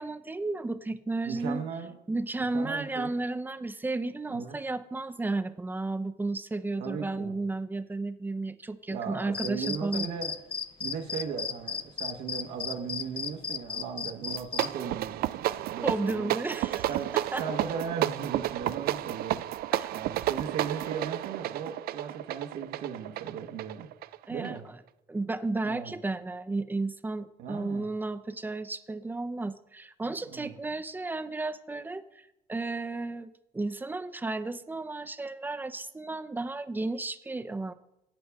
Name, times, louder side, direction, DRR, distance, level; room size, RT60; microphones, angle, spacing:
voice 1, 0.0-1.7 2.1-10.1 15.8-17.4 19.7-19.9 24.3-24.6 25.1-32.0 32.5-37.7, right 2 dB, 10° right, 11 dB, 0.5 m, -33 dB
voice 2, 1.3-1.9 2.5-3.1 4.3-4.6 6.8-7.4 8.9-10.3 10.8-16.3 16.9-19.4 19.9-23.9 24.3-24.6 25.6-26.0 27.4-27.9 30.3-30.5, right 6 dB, 85° right, 2 dB, 1.3 m, -37 dB
sound 1, 9.3-14.7, left 6 dB, 30° left, 0.6 m, -34 dB
sound 2, 14.3-24.6, right 14 dB, 65° right, 0.4 m, -32 dB
12.0 x 8.3 x 3.5 m, 0.90 s
cardioid pair, 110°, 17 cm